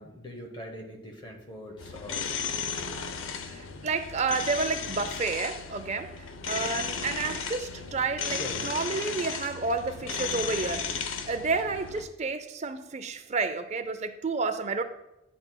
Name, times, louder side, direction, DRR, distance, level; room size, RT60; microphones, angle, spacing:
voice 1, 0.0-2.4 8.4-8.7, left 1 dB, 20° left, 2 dB, 0.8 m, -42 dB
sound 1, 1.8-12.0, left 6 dB, 75° left, 0.6 m, -35 dB
voice 2, 3.5-14.8, right 4 dB, 35° right, 9 dB, 0.4 m, -30 dB
11.0 x 5.5 x 2.2 m, 0.92 s
head